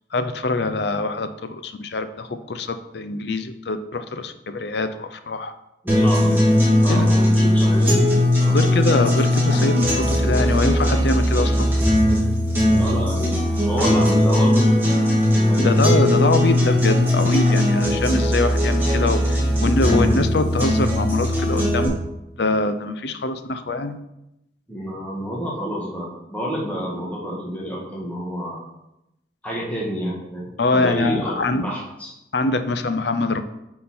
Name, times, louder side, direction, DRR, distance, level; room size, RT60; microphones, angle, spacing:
voice 1, 0.1-5.5 6.2-6.4 6.9-7.1 8.5-11.7 15.6-21.9 22.4-24.0 30.6-31.7 32.3-33.4, left 2 dB, 65° left, 10 dB, 0.6 m, -23 dB
voice 2, 5.8-6.4 6.8-8.6 12.7-13.4 13.6-14.8 15.5-15.7 24.7-28.6 29.4-32.1, equal, 10° left, -4 dB, 1.6 m, -29 dB
sound 1, 5.9-21.9, left 1 dB, 10° right, 2.1 m, -18 dB
9.4 x 3.9 x 4.3 m, 0.87 s
head